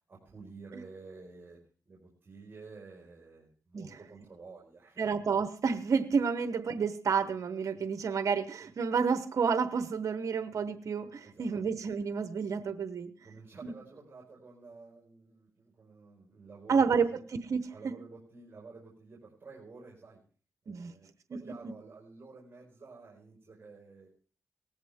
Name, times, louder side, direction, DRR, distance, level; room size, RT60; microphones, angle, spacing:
voice 1, 0.1-5.1 11.2-11.6 13.2-17.3 17.7-20.2 20.6-24.1, right 4 dB, 40° right, -2 dB, 4.9 m, -51 dB
voice 2, 5.0-13.1 16.7-17.1 17.5-17.6 20.7-20.9, right 5 dB, 65° right, 11 dB, 0.9 m, -29 dB
18.0 x 14.0 x 3.6 m, 0.42 s
cardioid pair, 65°, 6 cm